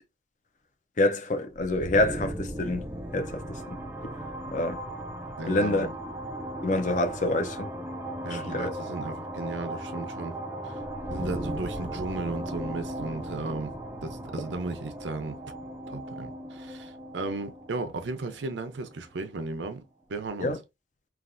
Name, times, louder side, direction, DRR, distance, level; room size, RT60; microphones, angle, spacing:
voice 1, 1.0-2.9 3.1-3.8 4.5-4.8 5.5-5.9 6.6-7.7 8.3-8.7 20.4-20.6, left 2 dB, 45° left, 0.5 m, -27 dB
sound 1, 1.5-19.2, right 1 dB, 10° right, 0.4 m, -37 dB
voice 2, 5.4-6.0 8.2-10.4 10.6-10.8 11.1-13.7 14.0-15.4 15.9-19.8 20.1-20.5, right 3 dB, 90° right, 0.6 m, -35 dB
3.2 x 2.4 x 2.5 m
head